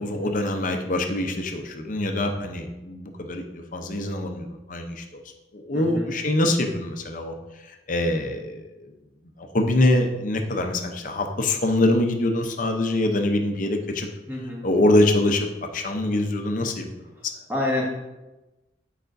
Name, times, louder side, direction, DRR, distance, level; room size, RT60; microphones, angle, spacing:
voice 1, 0.0-5.2 5.5-8.9 9.4-14.1 14.6-16.9 17.2-17.3, left 1 dB, 45° left, 4 dB, 0.6 m, -24 dB
voice 2, 5.7-6.0 14.3-14.6 17.5-17.8, left 2 dB, 10° right, -3 dB, 1.3 m, -27 dB
9.1 x 5.0 x 2.6 m, 1.0 s
head